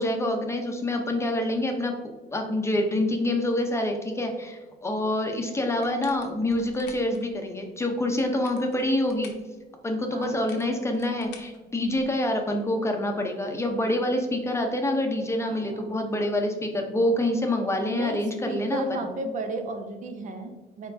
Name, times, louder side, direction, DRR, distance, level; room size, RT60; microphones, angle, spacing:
voice 1, 0.0-1.9 2.3-9.3 9.8-19.0, left 1 dB, 15° left, 3 dB, 0.7 m, -26 dB
sound 1, 5.8-7.2 8.0-9.5 10.2-12.2, left 6 dB, 90° left, 0.9 m, -49 dB
voice 2, 10.1-10.5 15.5-16.1 17.9-20.9, right 2 dB, 45° right, 6 dB, 0.7 m, -34 dB
4.4 x 4.3 x 2.6 m, 1.2 s
cardioid pair, 110°, 17 cm